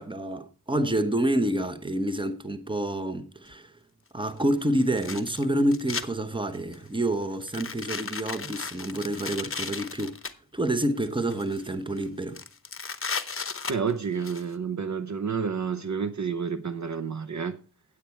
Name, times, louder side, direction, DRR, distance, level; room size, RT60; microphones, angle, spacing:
voice 1, 0.0-3.7 4.1-10.2 10.5-12.4, right 1 dB, 15° right, 1.0 m, -28 dB
sound 1, 3.5-3.6 4.8-6.0 6.5-6.9 7.4-10.3 11.1-11.7 12.0-12.1 12.3-14.4, left 5 dB, 35° left, 0.9 m, -35 dB
voice 2, 13.7-17.6, right 6 dB, 50° right, 0.7 m, -30 dB
9.0 x 8.5 x 4.5 m
cardioid pair, 55°, 38 cm